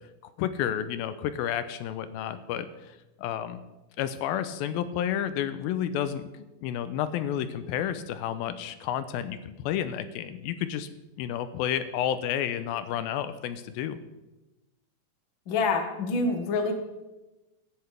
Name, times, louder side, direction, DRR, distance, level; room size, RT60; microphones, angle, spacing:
voice 1, 0.4-3.6 4.0-6.3 6.6-10.9 11.2-14.0, left 10 dB, 90° left, 11 dB, 2.4 m, -31 dB
voice 2, 15.5-16.7, left 3 dB, 50° left, 4 dB, 1.5 m, -26 dB
17.5 x 10.5 x 3.4 m, 1.0 s
omnidirectional pair, 4.2 m